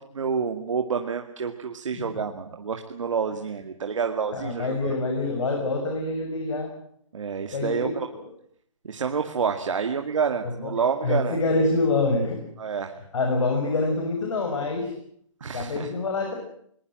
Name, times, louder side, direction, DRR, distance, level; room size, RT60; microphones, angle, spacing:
voice 1, 0.1-4.9 7.1-8.1 8.8-11.4 12.6-12.9 15.4-15.9, right 6 dB, 70° right, 5 dB, 2.3 m, -28 dB
voice 2, 4.3-6.7 7.5-8.2 10.4-10.7 11.0-12.4 13.1-14.9 15.5-16.3, left 2 dB, 65° left, 3 dB, 6.9 m, -26 dB
22.0 x 21.0 x 7.8 m, 0.66 s
hypercardioid pair, 165°, 17 cm